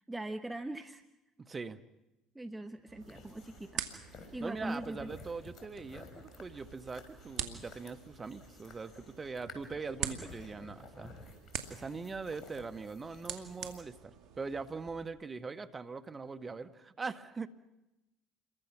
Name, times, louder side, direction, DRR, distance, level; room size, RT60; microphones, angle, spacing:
voice 1, 0.1-1.0 2.3-3.8 4.3-5.1, right 1 dB, 10° right, 8 dB, 1.3 m, -41 dB
voice 2, 1.4-1.8 4.4-11.1 11.7-17.5, right 4 dB, 25° right, 10 dB, 1.7 m, -42 dB
sound 1, 2.9-15.0, right 8 dB, 65° right, 2.5 m, -46 dB
sound 2, 3.0-13.8, left 3 dB, 45° left, 4.9 m, -54 dB
29.0 x 23.0 x 6.2 m, 0.96 s
hypercardioid pair, 70°, 0 cm